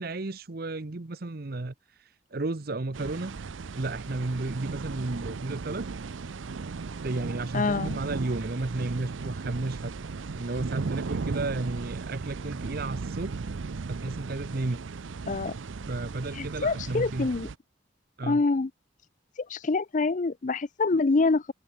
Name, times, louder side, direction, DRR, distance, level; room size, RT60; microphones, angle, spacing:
voice 1, 0.0-3.4 3.7-5.9 7.0-9.9 10.3-13.4 13.8-14.8 15.9-17.3 18.2-18.4, right 2 dB, 50° right, 0.9 m, -33 dB
sound 1, 2.9-17.6, right 4 dB, 80° right, 0.6 m, -36 dB
voice 2, 7.5-8.0 15.3-15.5 16.3-17.5 18.2-18.7 19.4-21.5, left 3 dB, 40° left, 0.5 m, -26 dB
head